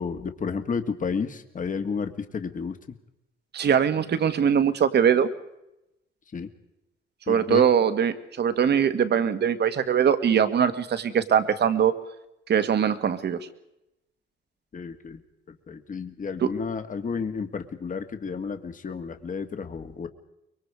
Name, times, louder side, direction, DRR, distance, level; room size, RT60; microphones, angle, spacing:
voice 1, 0.0-2.8 6.3-6.5 7.3-7.7 14.7-20.1, left 5 dB, 40° left, 8 dB, 1.9 m, -32 dB
voice 2, 3.5-5.3 7.3-11.9 12.5-13.4 16.4-16.5, right 8 dB, 60° right, 11 dB, 1.8 m, -22 dB
24.5 x 22.5 x 4.9 m, 0.88 s
cardioid pair, 90°, 20 cm